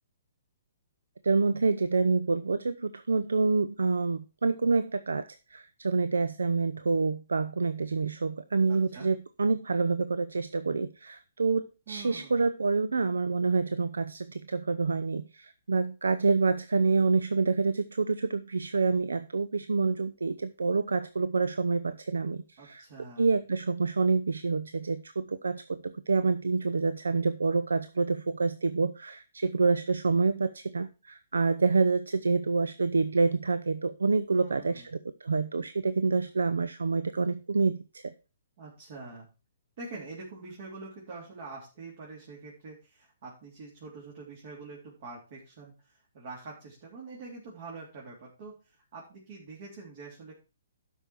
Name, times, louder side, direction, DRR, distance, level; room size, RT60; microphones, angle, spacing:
voice 1, 1.2-22.8 23.2-34.8 35.2-38.1, right 4 dB, 75° right, 13 dB, 0.5 m, -27 dB
voice 2, 8.7-9.1 11.9-12.4 22.6-23.3 34.3-34.9 38.6-39.3 39.8-50.3, right 3 dB, 50° right, -3 dB, 3.4 m, -45 dB
12.5 x 5.5 x 4.6 m, 0.31 s
figure-of-eight pair, 130°, 0 cm